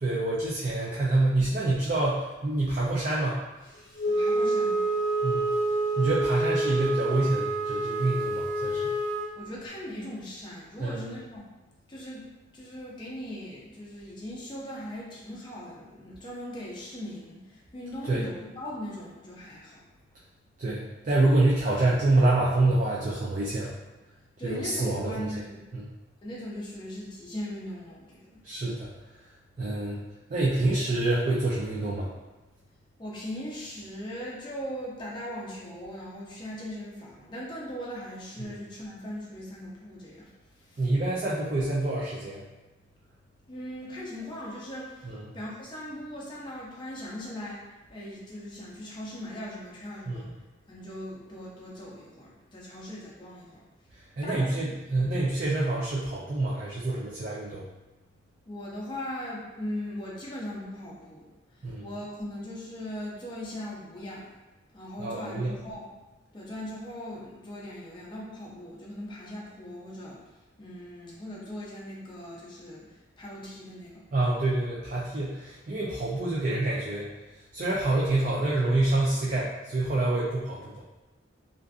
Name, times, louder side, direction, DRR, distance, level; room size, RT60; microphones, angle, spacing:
voice 1, 0.0-3.4 5.2-5.6 6.0-8.9 10.8-11.1 18.0-18.2 20.6-23.7 24.4-25.4 25.7-25.8 28.4-28.9 29.6-30.0 30.3-32.1 38.4-38.6 40.8-42.4 45.1-45.3 50.1-50.2 54.2-57.6 61.6-61.8 65.0-65.5 74.1-77.1 77.5-80.8, right 2 dB, 40° right, -5 dB, 0.3 m, -27 dB
Wind instrument woodwind instrument, 4.0-9.3, right 2 dB, 90° left, 0.6 m, -27 dB
voice 2, 4.1-4.8 9.4-11.4 11.9-12.3 12.5-19.8 24.4-25.6 26.2-28.4 33.0-40.3 40.6-40.9 43.5-47.6 47.9-50.3 50.7-53.6 54.2-54.8 58.5-61.3 61.8-64.3 64.7-65.9 66.3-70.2 70.6-74.1, equal, 25° left, -5 dB, 0.5 m, -39 dB
2.5 x 2.4 x 2.3 m, 1.1 s
head